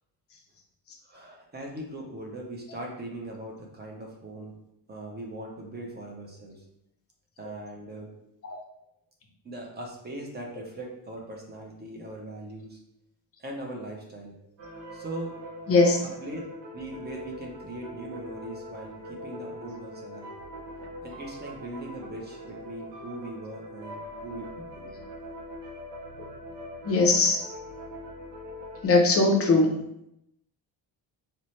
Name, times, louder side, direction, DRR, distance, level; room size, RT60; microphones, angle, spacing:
voice 1, 1.0-4.6 4.9-6.6 7.4-8.1 9.4-12.8 13.4-14.3 14.9-15.4 16.0-16.4 16.7-20.3 21.0-25.0, right 1 dB, 20° right, 0 dB, 0.5 m, -40 dB
sound 1, 14.6-28.9, equal, 70° right, 0.8 m, -42 dB
voice 2, 15.7-16.0 26.8-27.4 28.8-29.7, left 3 dB, 30° left, 1 dB, 0.5 m, -20 dB
4.2 x 2.1 x 3.0 m, 0.81 s
cardioid pair, 160°, 46 cm